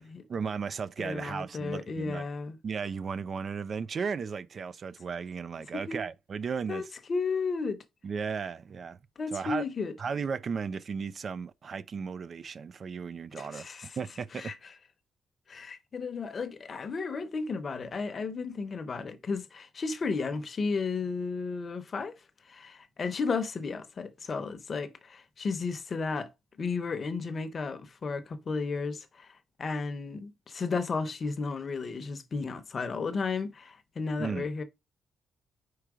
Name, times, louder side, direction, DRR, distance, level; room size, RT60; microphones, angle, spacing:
voice 1, 0.3-2.2 2.6-6.9 8.0-9.0 9.3-9.7 10.0-13.7 14.0-14.5 34.2-34.5, right 5 dB, 45° right, 0.4 m, -35 dB
voice 2, 1.0-2.6 5.7-6.0 6.7-6.8 7.1-7.8 9.2-9.9 13.3-13.9 14.4-14.5 15.5-22.1 22.5-26.3 26.6-29.3 29.6-34.6, left 4 dB, 40° left, 0.9 m, -33 dB
4.8 x 4.5 x 4.9 m
cardioid pair, 90°, 0 cm